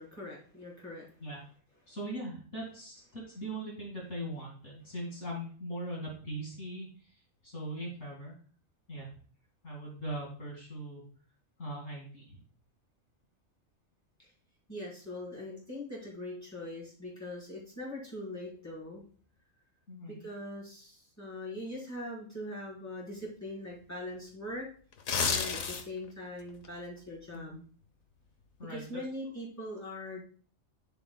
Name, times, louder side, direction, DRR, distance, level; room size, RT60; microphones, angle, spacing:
voice 1, 0.0-1.1 14.2-14.3 14.7-19.0 20.1-24.7 25.3-27.6 28.7-30.2, left 1 dB, 10° left, -6 dB, 4.2 m, -41 dB
voice 2, 1.9-6.9 7.4-8.3 8.9-9.1 9.6-11.0 11.6-12.4 19.9-20.2 27.3-27.6 28.6-29.0, right 1 dB, 65° left, -2 dB, 2.7 m, -40 dB
sound 1, 24.9-26.1 26.5-26.7, left 5 dB, 85° left, 1.3 m, -30 dB
11.0 x 7.4 x 2.3 m, 0.43 s
omnidirectional pair, 1.4 m